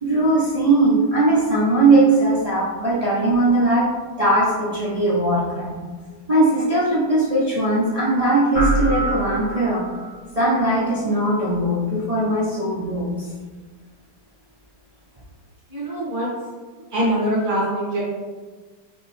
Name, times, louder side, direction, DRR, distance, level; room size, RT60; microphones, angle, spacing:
voice 1, 0.0-3.9 4.2-5.8 6.3-9.8 10.4-13.1, right 2 dB, 80° right, -8 dB, 0.3 m, -19 dB
sound 1, 8.5-10.1, right 1 dB, 30° left, 1.1 m, -24 dB
voice 2, 15.7-16.3 16.9-18.0, right 1 dB, 30° right, -8 dB, 1.6 m, -23 dB
5.0 x 3.0 x 3.2 m, 1.4 s
omnidirectional pair, 1.9 m